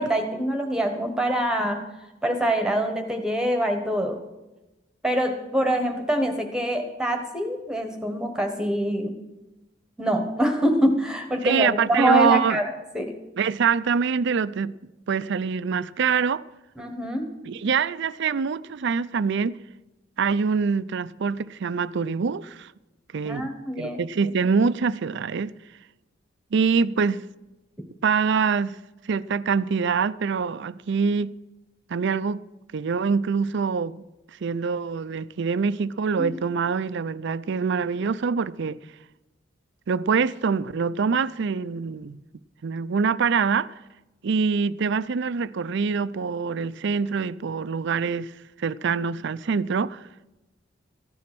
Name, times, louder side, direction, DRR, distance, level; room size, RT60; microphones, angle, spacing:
voice 1, 0.0-1.9 2.2-4.2 5.0-9.2 10.0-13.1 16.8-17.3 23.2-24.0 36.2-36.4, right 1 dB, 5° right, 1.3 m, -25 dB
voice 2, 11.4-12.6 13.4-14.7 15.1-16.4 17.5-19.6 20.2-22.7 23.1-23.5 23.8-25.5 26.5-27.2 28.0-28.8 29.0-31.3 31.9-32.4 32.7-34.0 34.4-38.8 39.9-42.2 42.6-43.8 44.2-48.3 48.6-50.1, right 5 dB, 65° right, 0.5 m, -24 dB
14.5 x 10.5 x 6.1 m
head